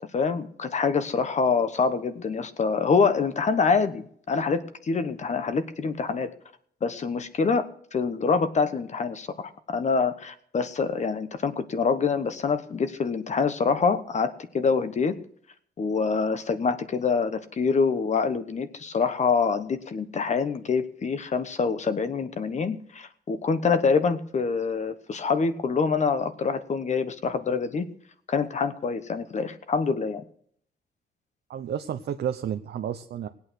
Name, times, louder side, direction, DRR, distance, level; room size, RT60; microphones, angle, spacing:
voice 1, 0.0-6.3 6.8-7.6 7.9-15.1 15.8-27.9 28.3-30.2, left 5 dB, 40° left, 11 dB, 1.1 m, -25 dB
voice 2, 31.5-33.3, right 9 dB, 75° right, 7 dB, 0.8 m, -31 dB
19.0 x 8.7 x 6.3 m, 0.63 s
wide cardioid pair, 150°, 17 cm